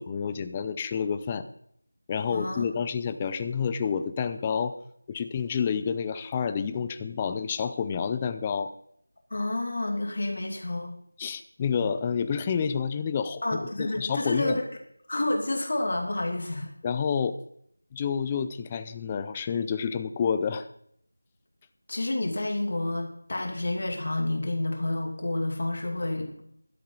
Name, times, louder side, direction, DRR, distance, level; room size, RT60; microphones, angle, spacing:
voice 1, 0.0-1.4 2.1-4.8 5.1-8.7 11.2-13.4 13.8-14.6 16.8-17.3 17.9-20.7, left 6 dB, 15° left, 10 dB, 0.5 m, -29 dB
voice 2, 2.3-2.6 9.3-11.0 13.4-14.6 15.1-16.7 21.9-26.4, left 2 dB, 50° left, 2 dB, 2.6 m, -29 dB
16.5 x 12.5 x 4.0 m, 0.68 s
figure-of-eight pair, 175°, 0 cm